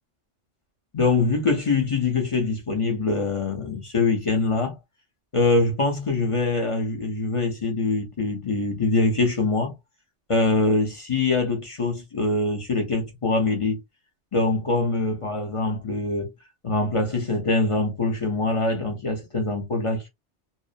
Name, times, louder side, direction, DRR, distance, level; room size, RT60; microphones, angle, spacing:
voice 1, 0.9-4.8 5.3-9.8 10.3-13.8 14.3-16.3 16.6-20.1, left 3 dB, 35° left, 0.6 m, -23 dB
2.7 x 2.0 x 2.4 m
omnidirectional pair, 1.2 m